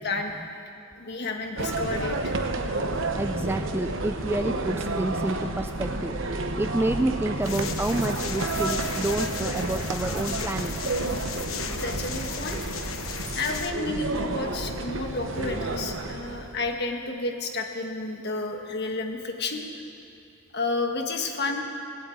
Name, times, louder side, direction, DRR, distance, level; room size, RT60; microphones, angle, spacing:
voice 1, 0.0-0.3 1.0-2.3 11.7-12.6 13.3-19.6 20.5-21.6, left 3 dB, 55° left, 3 dB, 1.6 m, -31 dB
sound 1, 1.6-16.7, right 2 dB, 65° right, 1.0 m, -31 dB
voice 2, 1.7-2.2 3.0-10.8, right 1 dB, 10° right, 7 dB, 0.4 m, -29 dB
sound 2, 7.4-13.7, left 7 dB, 85° left, 1.0 m, -36 dB
19.5 x 8.6 x 8.7 m, 2.6 s
head